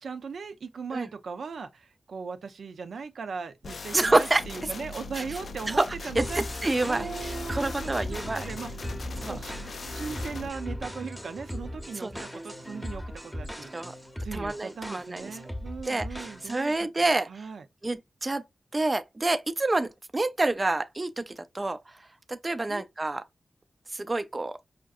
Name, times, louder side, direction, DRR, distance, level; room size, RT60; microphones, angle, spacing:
voice 1, 0.0-6.4 6.9-8.8 9.3-9.5 9.9-13.9 14.2-17.6 22.7-22.8, right 5 dB, 85° right, 0.5 m, -39 dB
sound 1, 3.6-10.5, left 3 dB, 70° left, 0.3 m, -40 dB
voice 2, 3.9-4.4 5.7-5.9 6.2-8.5 9.2-9.4 12.0-12.2 13.7-13.9 14.3-15.2 15.9-17.3 17.8-18.4 18.7-21.8 22.3-23.2 23.9-24.6, right 2 dB, 25° right, 0.3 m, -28 dB
sound 2, 6.2-16.8, equal, 5° left, 0.8 m, -38 dB
4.9 x 2.6 x 2.4 m
wide cardioid pair, 110°, 0 cm